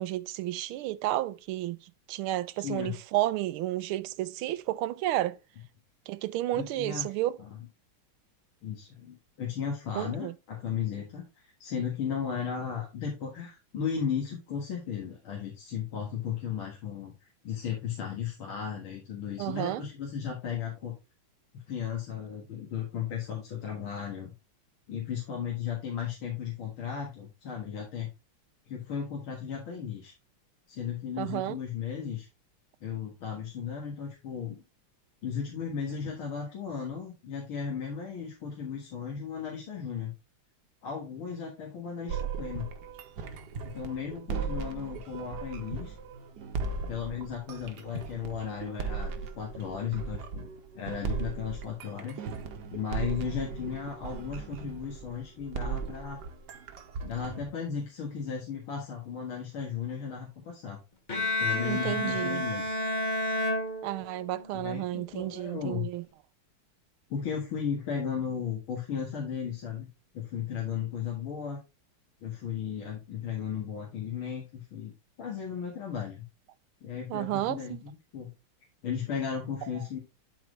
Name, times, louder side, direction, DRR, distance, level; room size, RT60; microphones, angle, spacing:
voice 1, 0.0-1.8 2.1-5.4 6.1-7.4 9.9-10.3 19.4-19.8 31.2-31.6 61.6-62.4 63.8-66.0 77.1-77.8, right 15 dB, 85° right, 1.4 m, -31 dB
voice 2, 2.6-2.9 6.5-7.1 7.4-7.7 8.6-17.1 17.4-20.9 21.7-24.3 24.9-28.1 28.7-30.1 30.7-32.3 32.8-34.6 35.2-40.1 40.8-42.7 43.6-45.9 46.9-50.5 50.7-52.2 52.7-56.2 57.0-60.8 61.4-62.7 64.5-65.9 67.1-69.9 70.1-71.6 72.2-74.9 75.2-76.3 76.8-78.3 78.8-80.0, left 7 dB, 75° left, 2.6 m, -35 dB
sound 1, 42.1-57.5, right 5 dB, 60° right, 1.4 m, -37 dB
Bowed string instrument, 61.1-64.4, left 1 dB, 35° left, 0.7 m, -30 dB
11.5 x 4.5 x 3.2 m
omnidirectional pair, 2.3 m